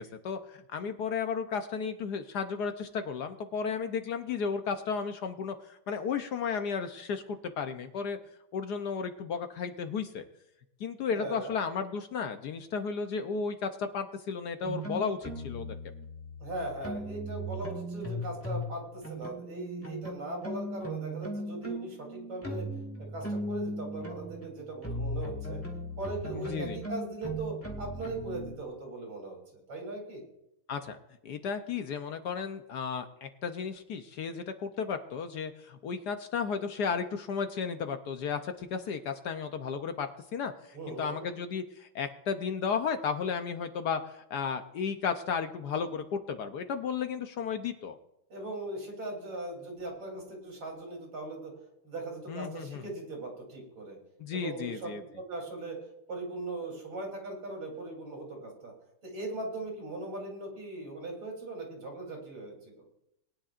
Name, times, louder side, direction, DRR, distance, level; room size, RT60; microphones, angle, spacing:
voice 1, 0.0-8.2 8.5-10.3 10.8-15.7 26.3-26.8 30.7-31.0 31.2-48.0 52.3-52.8 54.2-55.0, left 6 dB, 65° left, 7 dB, 1.1 m, -34 dB
voice 2, 11.1-11.6 16.4-22.7 23.0-25.6 26.0-30.2 40.7-41.3 48.3-51.5 51.8-54.0 54.3-55.8 56.1-58.7 59.0-62.7, right 2 dB, 80° right, 0 dB, 4.1 m, -39 dB
sound 1, 14.6-18.7 19.0-28.5, right 1 dB, 5° left, 1.6 m, -38 dB
21.0 x 10.0 x 2.5 m, 0.82 s
omnidirectional pair, 2.2 m